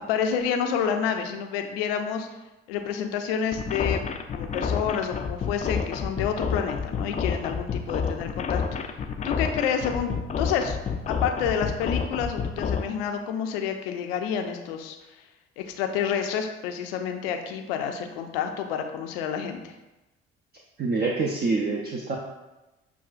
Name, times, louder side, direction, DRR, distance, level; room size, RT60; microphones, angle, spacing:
voice 1, 0.1-2.3 2.7-4.0 4.3-8.9 9.2-10.1 10.4-10.8 11.1-15.2 15.6-19.7, left 7 dB, 75° left, 6 dB, 0.5 m, -29 dB
sound 1, 3.5-12.8, left 6 dB, 25° left, 0.4 m, -29 dB
voice 2, 20.8-22.2, right 3 dB, 30° right, -2 dB, 0.6 m, -26 dB
6.8 x 2.3 x 2.4 m, 1.0 s
hypercardioid pair, 55°, 30 cm